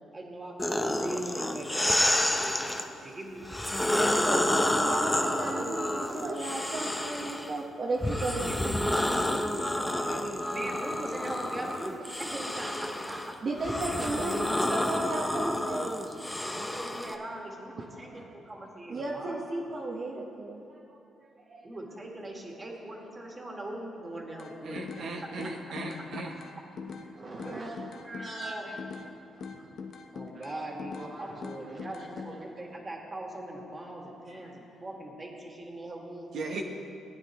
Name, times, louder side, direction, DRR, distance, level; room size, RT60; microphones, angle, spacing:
voice 1, 0.1-3.4 3.8-5.0 8.0-13.4 14.0-14.4 16.4-19.3 21.6-25.3 27.3-28.7 30.1-36.3, right 1 dB, 25° right, -1 dB, 2.0 m, -41 dB
sound 1, 0.6-2.9 3.4-7.5 8.0-17.2, left 1 dB, 10° left, 0.8 m, -29 dB
voice 2, 4.2-8.8 13.4-16.3 17.8-17.9 18.1-18.2 18.9-20.6 20.9-21.0 21.5-21.6 27.1-27.8 28.1-28.8 30.3-30.4 31.0-31.4 34.3-34.5, right 2 dB, 50° right, -3 dB, 1.1 m, -35 dB
sound 2, 24.4-25.1 25.4-27.1 27.4-29.1 29.4-31.1 31.4-32.3, left 5 dB, 65° left, 0.8 m, -41 dB
voice 3, 24.6-26.3 36.3-36.6, right 3 dB, 70° right, 0 dB, 1.0 m, -37 dB
18.0 x 9.1 x 3.0 m, 2.7 s
cardioid pair, 85°, 0 cm